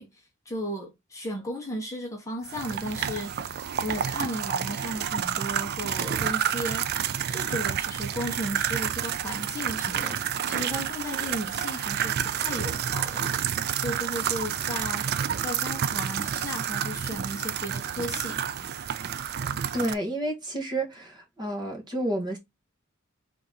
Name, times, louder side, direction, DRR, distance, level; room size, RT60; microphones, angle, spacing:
voice 1, 0.0-15.1 15.4-18.5, equal, 15° left, 1.1 m, -35 dB
sound 1, 2.5-19.9, right 9 dB, 50° right, 0.4 m, -29 dB
voice 2, 19.7-22.4, right 1 dB, 20° right, 1.2 m, -30 dB
4.0 x 2.9 x 3.7 m
head